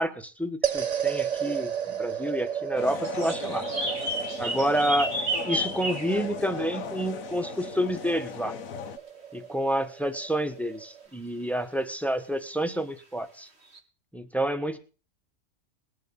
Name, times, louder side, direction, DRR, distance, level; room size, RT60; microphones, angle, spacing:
voice 1, 0.0-1.7 2.0-3.6 4.4-5.1 5.4-8.6 9.3-13.5 14.1-14.8, equal, ahead, 9 dB, 1.1 m, -29 dB
sound 1, 0.6-11.1, right 8 dB, 35° right, 0.8 m, -34 dB
sound 2, 2.8-9.0, left 8 dB, 90° left, 1.4 m, -38 dB
sound 3, 3.0-6.1 7.4-7.5 12.7-12.8 13.7-13.8, right 1 dB, 50° right, 2.5 m, -31 dB
20.5 x 7.0 x 5.4 m, 0.37 s
omnidirectional pair, 1.4 m